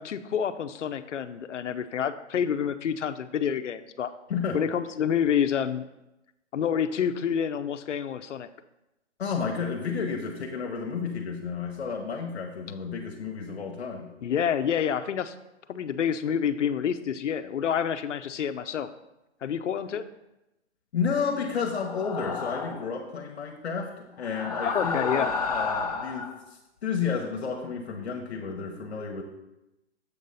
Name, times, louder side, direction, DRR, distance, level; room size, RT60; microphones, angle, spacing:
voice 1, 0.0-4.1 4.5-5.8 6.5-8.5 14.2-15.3 15.7-18.9 19.4-20.0 24.6-25.3, left 8 dB, 85° left, 11 dB, 0.6 m, -28 dB
voice 2, 9.2-14.1 20.9-29.2, left 6 dB, 60° left, 2 dB, 1.0 m, -31 dB
sound 1, 21.7-22.9 24.2-26.3, left 4 dB, 35° left, 0.5 m, -31 dB
7.3 x 4.0 x 5.4 m, 0.93 s
hypercardioid pair, 170°, 36 cm